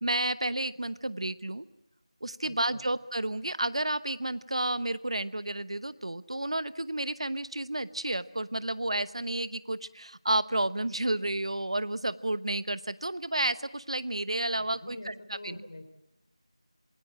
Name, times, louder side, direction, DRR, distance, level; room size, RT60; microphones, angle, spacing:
voice 1, 0.0-1.6 2.2-15.1 15.4-15.6, right 1 dB, 60° right, 16 dB, 1.0 m, -31 dB
voice 2, 2.4-2.9 14.5-15.8, left 1 dB, 40° left, 9 dB, 3.4 m, -46 dB
27.0 x 22.0 x 7.6 m, 0.89 s
figure-of-eight pair, 175°, 3 cm